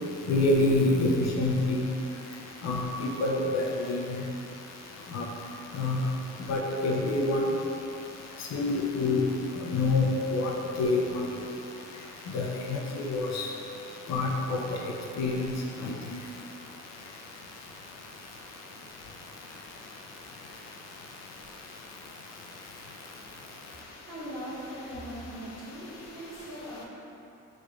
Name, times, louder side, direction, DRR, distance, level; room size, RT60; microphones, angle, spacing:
voice 1, 0.3-1.9 2.6-4.2 5.1-5.2 5.7-6.1 6.5-7.4 8.5-9.2 9.6-11.2 12.3-13.5 14.1-14.6 15.2-15.5 15.8-15.9, left 2 dB, 60° left, -1 dB, 0.6 m, -27 dB
voice 2, 23.7-26.9, right 1 dB, 45° right, -8 dB, 1.5 m, -40 dB
5.2 x 3.2 x 2.3 m, 2.8 s
cardioid pair, 90°, 30 cm